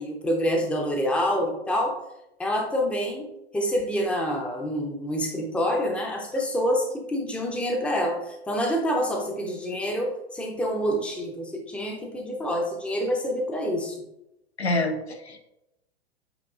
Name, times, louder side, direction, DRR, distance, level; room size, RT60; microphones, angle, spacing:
voice 1, 0.0-2.0 2.4-3.3 3.5-14.0, equal, 5° left, 1 dB, 0.6 m, -27 dB
voice 2, 14.6-15.4, left 2 dB, 85° left, 4 dB, 0.8 m, -27 dB
7.7 x 2.6 x 2.4 m, 0.87 s
figure-of-eight pair, 100°, 31 cm